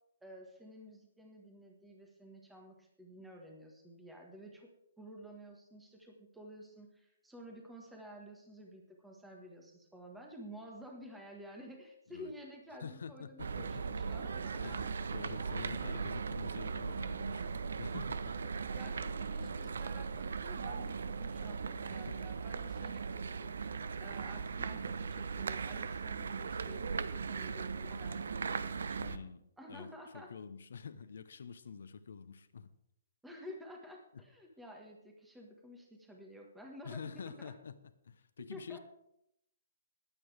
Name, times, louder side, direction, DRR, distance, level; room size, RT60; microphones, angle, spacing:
voice 1, 0.2-4.7 5.0-14.9 15.6-16.0 18.7-29.2 29.6-30.3 33.2-37.5 38.5-38.8, equal, 5° right, 1 dB, 1.5 m, -52 dB
voice 2, 12.8-13.8 14.6-18.4 19.4-19.6 21.9-22.2 29.0-29.4 29.7-32.7 36.8-37.7 38.0-38.8, left 6 dB, 75° left, 13 dB, 1.0 m, -47 dB
sound 1, 13.4-29.2, right 5 dB, 80° right, 0.7 m, -38 dB
20.5 x 8.6 x 3.4 m, 0.78 s
hypercardioid pair, 170°, 0 cm